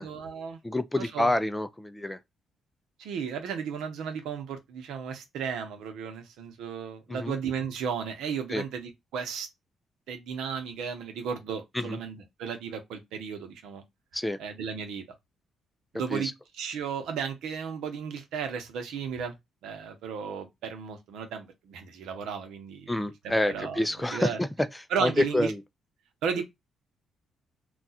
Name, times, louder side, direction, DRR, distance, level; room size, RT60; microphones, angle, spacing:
voice 1, 0.0-0.6 1.0-1.3 3.0-9.5 10.1-13.8 14.4-15.0 15.9-16.3 16.6-19.4 19.6-22.9 23.2-23.8 24.1-24.4 24.9-25.5 26.2-26.4, right 7 dB, 85° right, 0.8 m, -34 dB
voice 2, 0.6-2.2 7.1-7.4 8.5-8.6 11.7-12.0 14.1-14.4 16.1-16.3 22.9-25.6 26.4-26.5, left 1 dB, 10° left, 0.4 m, -28 dB
2.4 x 2.3 x 4.0 m
cardioid pair, 90°, 0 cm